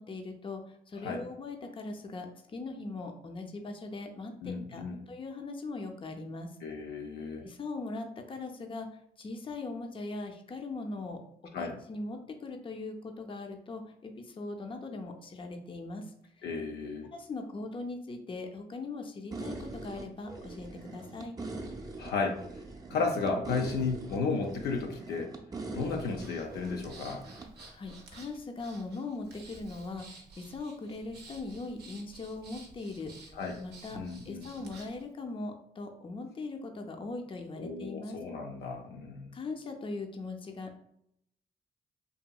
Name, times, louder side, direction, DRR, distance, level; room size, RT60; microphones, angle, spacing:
voice 1, 0.0-6.5 7.4-11.2 11.6-16.4 17.1-21.4 27.7-33.3 33.6-38.2 39.3-40.8, left 3 dB, 30° left, 4 dB, 0.5 m, -40 dB
voice 2, 4.4-5.1 6.6-7.5 11.5-11.8 16.4-17.1 22.0-22.4 22.9-25.3 25.7-27.3 33.3-33.6 33.9-34.5 37.6-39.4, left 4 dB, 85° left, 2 dB, 0.4 m, -34 dB
sound 1, 19.3-27.5, right 2 dB, 20° right, 0.5 m, -42 dB
Breathing, 26.2-35.0, right 3 dB, 80° right, 0.5 m, -53 dB
2.8 x 2.6 x 2.2 m, 0.72 s
cardioid pair, 65°, 17 cm